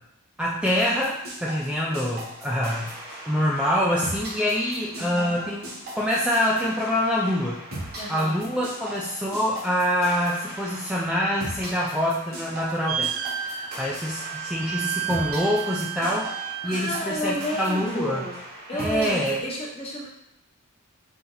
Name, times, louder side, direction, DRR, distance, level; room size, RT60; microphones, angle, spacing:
voice 1, 0.4-2.9 3.3-7.6 8.1-13.1 13.4-18.3 18.7-19.4, equal, 5° right, -5 dB, 0.4 m, -25 dB
sound 1, 0.6-19.4, right 1 dB, 45° right, 1.1 m, -39 dB
voice 2, 4.9-5.4 8.0-8.4 16.6-18.4 18.7-20.1, equal, 30° left, -3 dB, 1.0 m, -31 dB
sound 2, 12.9-17.9, right 10 dB, 60° right, 0.4 m, -33 dB
4.2 x 2.9 x 3.9 m, 0.84 s
head